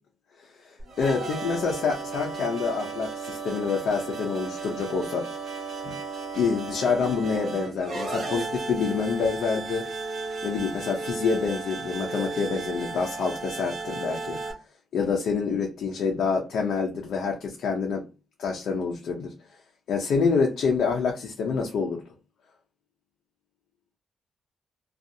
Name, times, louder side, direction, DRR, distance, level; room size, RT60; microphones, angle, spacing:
voice 1, 0.4-5.3 5.8-5.9 6.3-9.9 10.4-14.4 14.9-18.1 18.4-19.3 19.9-22.0, left 5 dB, 75° left, 0.5 m, -27 dB
sound 1, 0.8-14.5, right 4 dB, 45° right, 0.9 m, -34 dB
2.6 x 2.3 x 2.6 m
wide cardioid pair, 175°, 0 cm